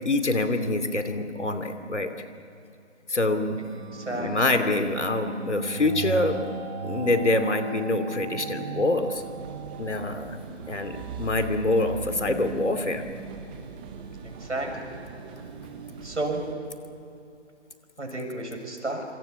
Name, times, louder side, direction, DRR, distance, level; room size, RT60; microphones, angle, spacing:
voice 1, 0.0-2.1 3.1-3.6 4.1-6.4 6.8-9.2 9.8-10.4 10.7-13.0, left 2 dB, 75° left, 8 dB, 2.8 m, -25 dB
sound 1, 3.5-15.9, right 4 dB, 30° right, 4.5 m, -38 dB
voice 2, 3.9-4.3 13.9-14.0 14.2-15.0 16.0-16.5 18.0-19.1, right 2 dB, 80° right, 3 dB, 6.9 m, -32 dB
sound 2, 9.1-16.5, right 5 dB, 10° right, 0.7 m, -43 dB
28.0 x 24.5 x 7.1 m, 2.6 s
figure-of-eight pair, 150°, 35 cm